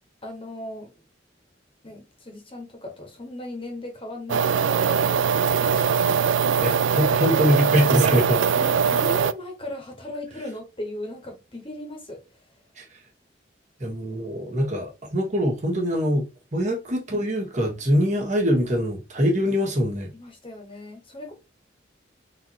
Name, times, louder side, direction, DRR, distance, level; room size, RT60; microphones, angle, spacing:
voice 1, 0.2-0.9 1.8-6.0 8.1-8.3 8.6-12.2 20.1-21.3, left 1 dB, 30° left, 1.2 m, -37 dB
sound 1, 4.3-9.3, right 6 dB, 90° right, 0.4 m, -21 dB
voice 2, 6.6-8.4 12.8-12.9 13.8-20.1, equal, 40° right, 1.7 m, -23 dB
4.0 x 2.8 x 4.6 m
head